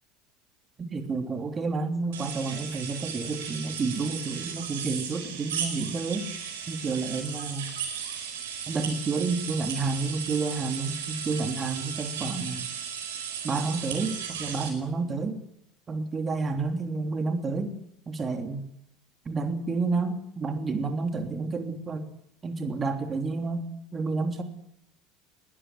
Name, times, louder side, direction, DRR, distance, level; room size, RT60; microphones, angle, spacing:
voice 1, 0.8-6.3 6.7-7.7 8.7-12.7 13.4-15.4 15.9-17.7 18.1-18.6 19.2-22.1 22.4-24.4, right 4 dB, 25° right, 7 dB, 3.2 m, -30 dB
sound 1, 2.1-14.7, right 7 dB, 65° right, 4.9 m, -36 dB
20.0 x 16.5 x 9.4 m, 0.75 s
figure-of-eight pair, 70°, 0 cm